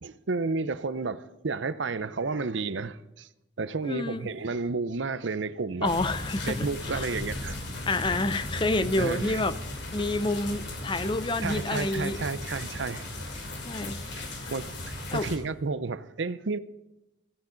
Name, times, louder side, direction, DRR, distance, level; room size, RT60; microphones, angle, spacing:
voice 1, 0.0-3.3 3.6-5.9 6.5-7.6 9.0-9.4 11.4-13.4 14.5-16.6, right 4 dB, 70° right, 0.6 m, -31 dB
voice 2, 3.8-4.3 5.8-7.1 7.9-9.5 9.9-12.2 13.7-14.5 15.1-15.3, left 2 dB, 25° left, 0.6 m, -29 dB
sound 1, 5.8-15.4, left 1 dB, 55° left, 3.0 m, -36 dB
16.0 x 15.5 x 3.9 m
head